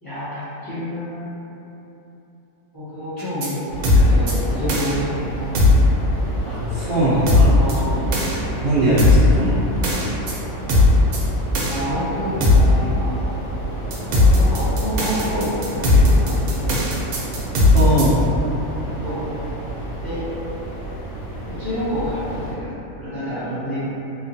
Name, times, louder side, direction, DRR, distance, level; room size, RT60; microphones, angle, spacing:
voice 1, 0.0-1.3 2.7-5.5 7.6-8.1 11.6-13.4 14.2-16.7 19.0-19.2 20.0-20.2 21.5-23.8, equal, 15° left, -15 dB, 1.0 m, -28 dB
sound 1, 3.2-3.5 3.8-4.3 4.7-4.9 5.5-5.9 7.3-7.7 8.1-8.4 9.0-9.3 9.8-10.3 10.7-11.2 11.5-11.8 12.4-12.7 13.9-18.0, left 2 dB, 80° right, 1.1 m, -16 dB
sound 2, 3.7-22.5, right 1 dB, 60° left, 0.6 m, -31 dB
voice 2, 6.5-7.5 8.6-9.6 17.7-18.2, right 1 dB, 60° right, -12 dB, 0.8 m, -20 dB
3.1 x 2.2 x 2.6 m, 3.0 s
omnidirectional pair, 1.5 m